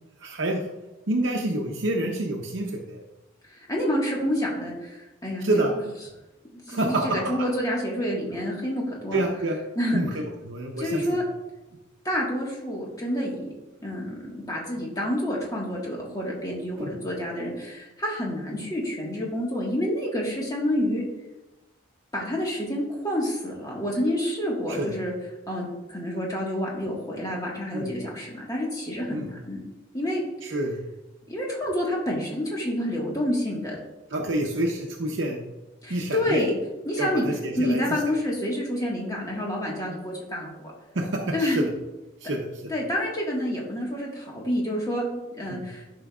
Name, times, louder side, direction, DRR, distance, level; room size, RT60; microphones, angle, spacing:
voice 1, 0.2-0.6 1.1-3.0 5.4-5.7 6.7-7.2 9.1-9.6 9.9-11.2 16.8-16.9 24.8-24.9 27.7-27.9 29.1-29.3 30.4-30.8 34.1-35.4 35.9-36.4 37.0-37.8 40.9-41.6 42.2-42.4 45.5-45.7, right 1 dB, 75° right, 0 dB, 0.7 m, -27 dB
voice 2, 3.5-5.6 6.5-9.2 9.7-10.0 10.8-11.2 12.0-13.3 13.8-21.0 22.1-25.1 25.5-29.6 29.9-30.2 31.3-33.8 35.8-36.5 36.8-37.2 37.6-40.7 41.3-41.6 42.7-45.1 45.4-45.8, left 1 dB, 20° left, -3 dB, 1.5 m, -28 dB
11.5 x 5.1 x 2.4 m, 1.1 s
head